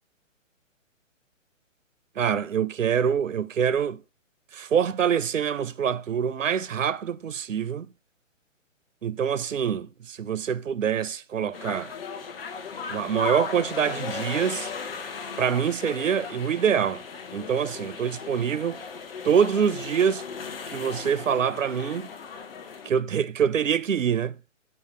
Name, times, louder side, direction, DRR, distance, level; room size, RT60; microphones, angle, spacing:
voice 1, 2.2-4.0 4.5-7.9 9.0-11.9 12.9-14.7 15.4-17.0 17.3-18.8 19.2-20.2 20.7-22.1 22.8-24.4, right 8 dB, 75° right, 0.6 m, -25 dB
sound 1, 11.5-22.9, left 6 dB, 45° left, 1.1 m, -37 dB
6.6 x 5.5 x 3.2 m
figure-of-eight pair, 130°, 39 cm